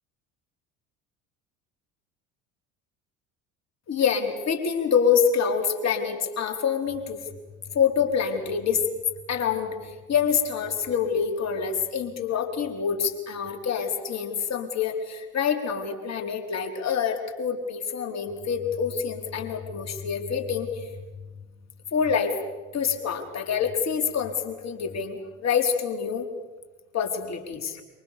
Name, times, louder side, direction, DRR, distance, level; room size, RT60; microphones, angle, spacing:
voice 1, 3.9-7.2 7.7-8.9 9.3-20.9 21.9-22.3 22.7-26.3 26.9-27.8, left 7 dB, 40° left, 4 dB, 4.8 m, -26 dB
27.5 x 25.0 x 7.0 m, 1.2 s
hypercardioid pair, 65°, 39 cm